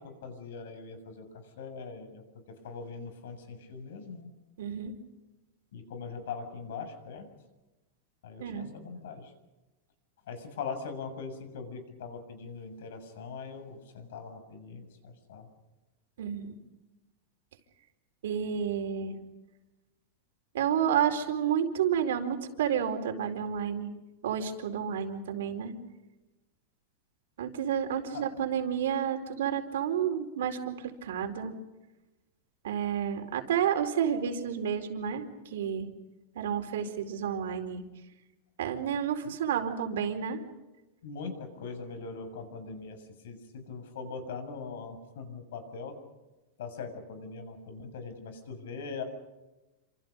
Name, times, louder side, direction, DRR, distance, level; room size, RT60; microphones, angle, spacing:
voice 1, 0.2-1.3 1.6-4.3 5.7-7.3 8.2-9.3 10.3-15.5 28.1-28.2 39.2-39.3 41.0-43.0 43.2-45.9 46.6-49.0, left 5 dB, 80° left, 8 dB, 7.2 m, -41 dB
voice 2, 4.6-4.9 8.4-8.7 16.2-16.6 18.2-19.2 20.5-23.9 24.2-25.7 27.4-31.5 32.6-35.9 36.3-37.8 38.6-40.4, right 8 dB, 90° right, 5 dB, 4.5 m, -30 dB
28.5 x 27.0 x 5.4 m, 1.0 s
supercardioid pair, 160°, 0 cm